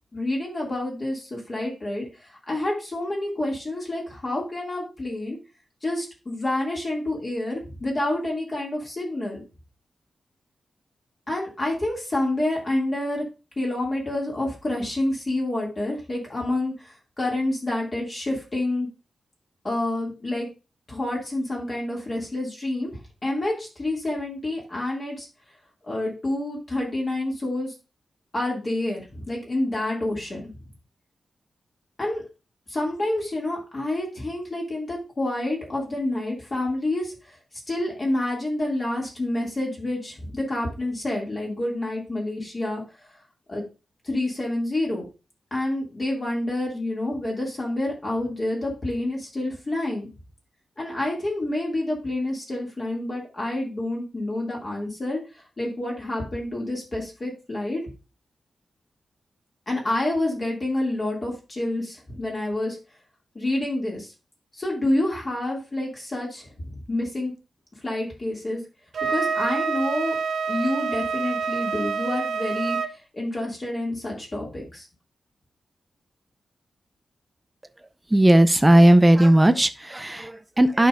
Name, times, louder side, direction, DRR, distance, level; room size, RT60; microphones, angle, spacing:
voice 1, 0.1-5.4 5.8-9.4 11.3-13.2 13.6-18.9 19.6-20.5 20.9-25.3 25.8-27.7 28.3-30.5 32.0-32.2 32.7-37.1 37.7-42.8 43.5-43.6 44.0-45.0 45.5-50.1 50.8-55.2 55.6-57.8 59.7-62.8 63.3-64.1 64.6-67.3 67.8-68.6 69.1-70.1 70.5-72.8 73.1-74.9, left 1 dB, 30° left, 2.4 m, -28 dB
Wind instrument woodwind instrument, 68.9-72.9, right 5 dB, 60° right, 0.5 m, -27 dB
voice 2, 78.1-80.9, right 1 dB, 10° right, 0.5 m, -16 dB
11.0 x 5.2 x 2.5 m
wide cardioid pair, 150°, 0 cm